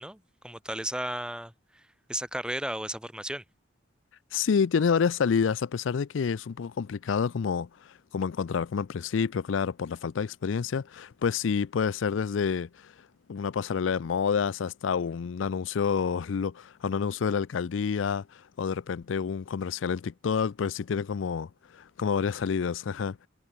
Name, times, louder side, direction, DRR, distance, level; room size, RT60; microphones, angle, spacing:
voice 1, 0.0-1.8 2.1-3.4, right 1 dB, 5° right, 1.2 m, -34 dB
voice 2, 4.3-12.9 13.3-23.3, left 6 dB, 85° left, 0.4 m, -28 dB
head